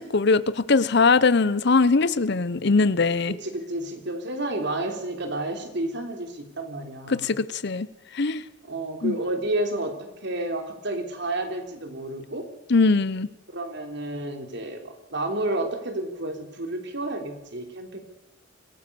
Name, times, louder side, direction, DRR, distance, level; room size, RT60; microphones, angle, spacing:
voice 1, 0.0-3.4 7.1-7.9 8.1-8.4 9.0-9.2 12.7-13.3, left 4 dB, 60° left, 16 dB, 0.8 m, -21 dB
voice 2, 3.3-7.4 8.6-12.5 13.5-18.0, right 1 dB, 60° right, 5 dB, 3.4 m, -31 dB
25.0 x 18.0 x 6.9 m, 0.93 s
head